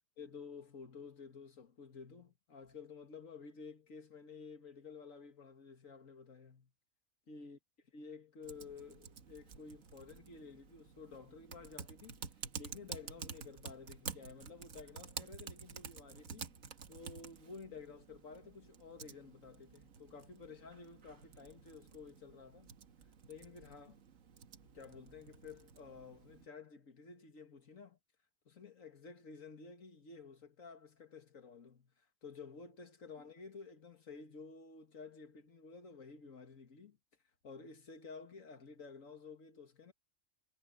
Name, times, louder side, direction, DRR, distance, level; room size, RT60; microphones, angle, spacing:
voice 1, 0.2-6.7 7.3-7.6 7.9-16.6 16.9-22.7 23.3-24.0 24.6-28.0 28.5-37.0 37.4-39.9, left 5 dB, 90° left, 2.2 m, -52 dB
Typing, 8.4-26.5, right 6 dB, 90° right, 1.6 m, -51 dB
omnidirectional pair, 1.3 m